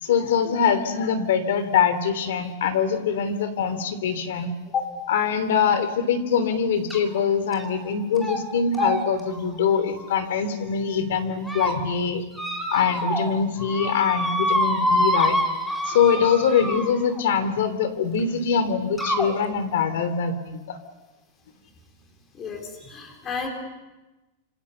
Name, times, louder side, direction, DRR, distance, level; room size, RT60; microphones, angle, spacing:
voice 1, 0.0-4.5 5.1-12.2 12.7-15.4 15.8-20.8, left 7 dB, 70° left, 12 dB, 3.2 m, -23 dB
sound 1, 6.9-7.2 7.5-7.9 8.2-8.4 8.7-10.7 11.2-11.8 12.3-13.3 13.6-17.2 18.2-18.3 19.0-19.3, equal, 5° left, 2.5 m, -27 dB
voice 2, 22.3-23.5, left 6 dB, 20° left, 3 dB, 3.8 m, -31 dB
27.5 x 26.5 x 7.0 m, 1.1 s
supercardioid pair, 180°, 0 cm